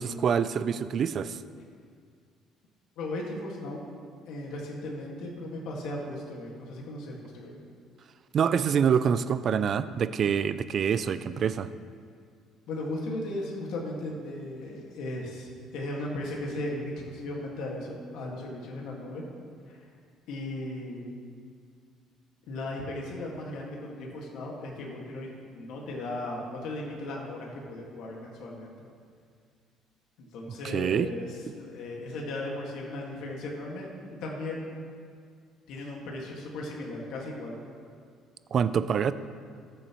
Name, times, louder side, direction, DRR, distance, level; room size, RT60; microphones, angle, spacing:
voice 1, 0.0-1.4 8.3-11.7 30.6-31.1 38.5-39.1, right 7 dB, 45° right, 14 dB, 0.4 m, -26 dB
voice 2, 3.0-3.9 4.3-7.5 12.7-19.2 19.7-19.9 20.3-21.1 22.5-25.3 25.5-28.8 30.2-33.9 34.2-34.7 35.7-37.6, left 1 dB, 75° left, -2 dB, 1.8 m, -36 dB
19.0 x 7.1 x 3.1 m, 2.1 s
cardioid pair, 135°, 0 cm